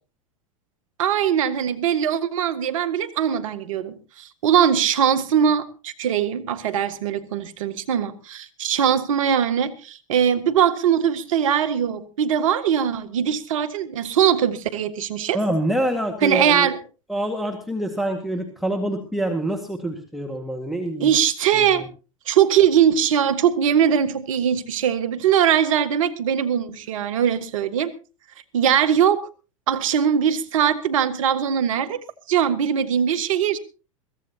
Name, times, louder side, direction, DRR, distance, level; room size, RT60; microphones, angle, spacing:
voice 1, 1.0-15.4 16.2-16.8 21.0-21.8 22.3-27.9 28.5-29.2 29.7-32.0 32.3-33.6, right 8 dB, 65° right, 1.8 m, -21 dB
voice 2, 15.3-16.7 17.1-21.1 21.5-21.7, right 1 dB, ahead, 1.9 m, -26 dB
22.5 x 15.5 x 2.9 m
hypercardioid pair, 95°, 18 cm